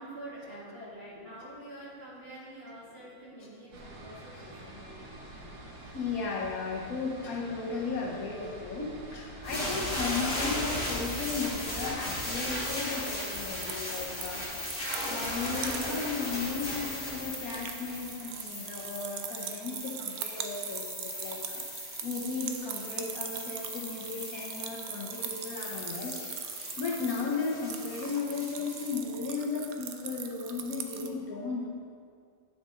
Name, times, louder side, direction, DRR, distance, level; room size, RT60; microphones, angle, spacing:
voice 1, 0.0-5.2, right 1 dB, 40° right, -9 dB, 2.6 m, -46 dB
sound 1, 3.7-10.6, right 1 dB, 90° right, 1.6 m, -47 dB
voice 2, 5.9-14.4 15.1-21.6 22.0-26.2 26.8-31.7, left 4 dB, 65° left, -3 dB, 1.5 m, -35 dB
sound 2, 9.4-28.9, left 1 dB, 50° left, 2.7 m, -37 dB
sound 3, 13.3-16.1 16.5-16.6 16.9-31.1, right 8 dB, 70° right, 1.0 m, -41 dB
9.5 x 6.0 x 3.8 m, 2.2 s
omnidirectional pair, 1.6 m